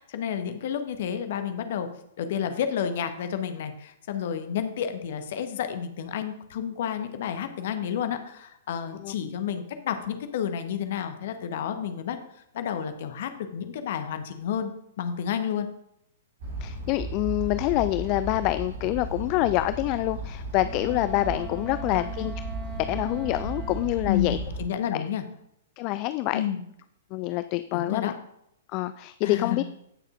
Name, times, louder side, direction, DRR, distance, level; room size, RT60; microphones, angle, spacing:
voice 1, 0.0-1.9 2.2-12.2 12.5-14.7 15.0-15.7 21.9-22.0 24.1-25.2 26.3-26.6 27.7-28.1 29.2-29.6, left 8 dB, 50° left, 8 dB, 1.0 m, -30 dB
sound 1, 16.4-24.6, right 2 dB, 50° right, 2.6 m, -35 dB
voice 2, 16.6-22.3 22.9-24.4 24.9-25.0 25.8-26.4 27.1-28.1 28.7-29.6, left 17 dB, 35° left, 13 dB, 0.3 m, -26 dB
Wind instrument woodwind instrument, 20.6-24.1, right 3 dB, 15° right, 0.9 m, -42 dB
16.0 x 6.5 x 2.5 m, 0.78 s
figure-of-eight pair, 110°, 0 cm